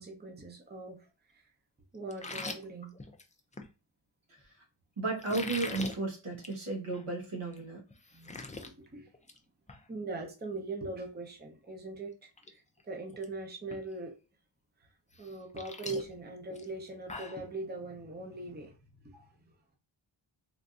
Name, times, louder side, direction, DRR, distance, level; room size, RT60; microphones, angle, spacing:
voice 1, 0.0-1.5 1.9-2.9 8.1-9.1 9.9-14.1 14.8-14.9 15.2-19.5, right 3 dB, 20° right, 1 dB, 0.7 m, -41 dB
sound 1, 2.1-3.7 5.2-6.0 6.3-6.6 6.9-7.0 7.5-7.6 7.9-8.7 9.1-9.4 9.7-9.8 11.7-11.8 12.2-12.5 12.8-13.3 13.7-13.8 15.1-17.4, left 3 dB, 15° left, 0.3 m, -42 dB
voice 2, 5.0-7.8 19.1-19.2, right 3 dB, 80° right, -1 dB, 1.2 m, -34 dB
3.4 x 2.6 x 2.4 m, 0.31 s
wide cardioid pair, 75°, 50 cm